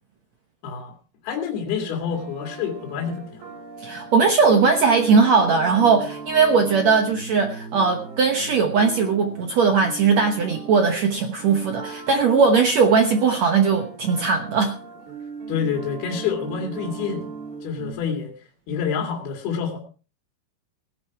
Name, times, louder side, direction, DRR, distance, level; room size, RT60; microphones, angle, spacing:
voice 1, 0.6-0.9 1.2-3.4 15.5-17.3 17.6-18.3 18.7-19.8, left 7 dB, 75° left, 2 dB, 4.0 m, -27 dB
sound 1, 1.8-17.9, right 5 dB, 85° right, 5.7 m, -38 dB
voice 2, 3.8-14.8, right 5 dB, 65° right, 5 dB, 1.8 m, -19 dB
17.5 x 11.0 x 4.7 m, 0.37 s
omnidirectional pair, 4.6 m